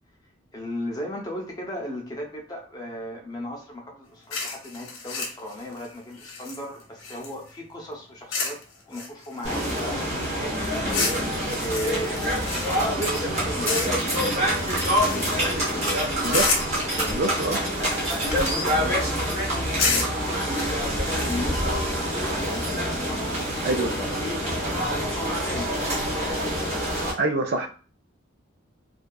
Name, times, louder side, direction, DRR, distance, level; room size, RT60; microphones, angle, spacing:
voice 1, 0.5-8.6 8.9-11.1 11.6-16.0 16.9-23.3 23.7-24.4 24.7-25.8, left 1 dB, 20° left, 0 dB, 0.5 m, -36 dB
sound 1, 4.3-7.5 8.3-8.6 8.9-10.1 10.9-13.2 13.7-14.1 14.5-15.6 16.3-16.8 17.5-18.8 19.8-21.3, left 4 dB, 85° left, 0.7 m, -30 dB
sound 2, 9.4-27.1, equal, 30° right, 0.9 m, -26 dB
voice 2, 17.1-17.6 23.6-23.9 27.2-27.7, right 2 dB, 50° right, 4 dB, 0.3 m, -25 dB
2.6 x 2.3 x 2.2 m, 0.38 s
head